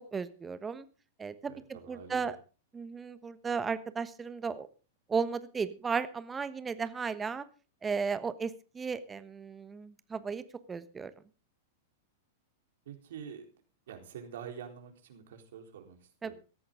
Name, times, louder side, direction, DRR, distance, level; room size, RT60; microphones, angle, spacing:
voice 1, 0.1-0.8 1.2-1.5 1.9-2.4 2.7-4.7 5.1-7.4 7.8-8.5 8.7-10.4 10.7-11.1 16.2-16.3, right 5 dB, 15° right, 13 dB, 1.2 m, -34 dB
voice 2, 1.5-2.4 12.9-13.5 13.9-16.3, right 8 dB, 70° right, 4 dB, 4.0 m, -46 dB
17.0 x 14.0 x 3.7 m, 0.35 s
hypercardioid pair, 105°, 0 cm